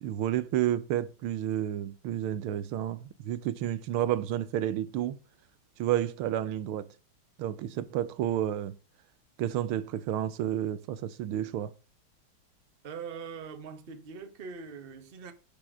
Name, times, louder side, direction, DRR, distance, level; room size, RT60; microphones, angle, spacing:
voice 1, 0.0-5.2 5.8-6.9 7.4-8.7 9.4-11.7, right 11 dB, 90° right, 1.6 m, -30 dB
voice 2, 12.8-15.3, right 6 dB, 35° right, 1.0 m, -42 dB
10.5 x 5.2 x 6.1 m
omnidirectional pair, 2.3 m